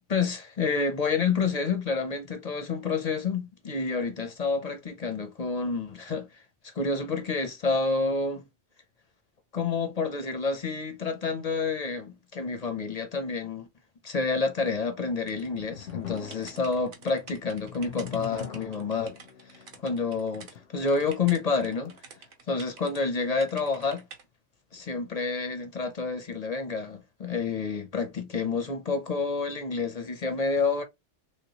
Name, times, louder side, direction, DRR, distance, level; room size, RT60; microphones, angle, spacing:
voice 1, 0.1-6.4 6.7-8.4 9.5-13.7 14.0-19.2 19.8-20.5 20.7-21.9 22.5-24.0 24.7-30.8, left 4 dB, 50° left, 0.5 m, -29 dB
sound 1, 15.3-22.2, left 8 dB, 85° left, 0.9 m, -44 dB
sound 2, 15.3-20.5 20.9-23.0 23.4-24.2, right 5 dB, 55° right, 0.9 m, -49 dB
3.2 x 2.9 x 2.8 m
omnidirectional pair, 1.2 m